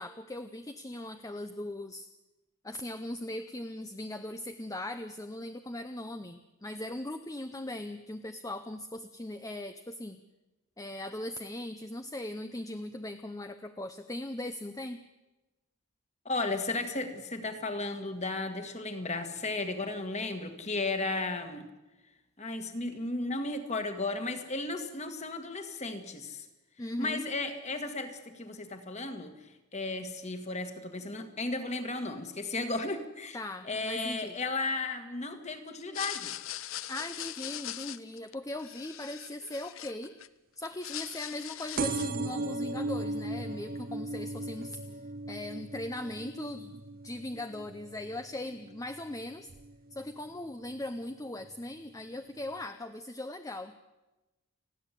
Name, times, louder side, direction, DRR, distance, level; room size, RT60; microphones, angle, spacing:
voice 1, 0.0-2.1 2.6-10.2 10.8-15.0 26.8-27.2 33.3-34.4 36.9-40.1 40.6-45.0 45.3-46.7 47.0-49.5 49.9-53.8, left 1 dB, 15° left, 8 dB, 0.6 m, -39 dB
voice 2, 16.3-21.7 22.4-26.5 27.0-29.4 29.7-33.4 33.6-36.3, left 2 dB, 30° left, 7 dB, 1.9 m, -34 dB
sound 1, 35.8-40.3 40.6-42.2, left 13 dB, 65° left, 0.6 m, -41 dB
sound 2, 41.8-49.0 49.5-49.9 50.8-50.9 51.1-51.2 51.4-51.5, right 2 dB, 40° right, 0.7 m, -37 dB
29.5 x 11.0 x 8.4 m, 1.1 s
head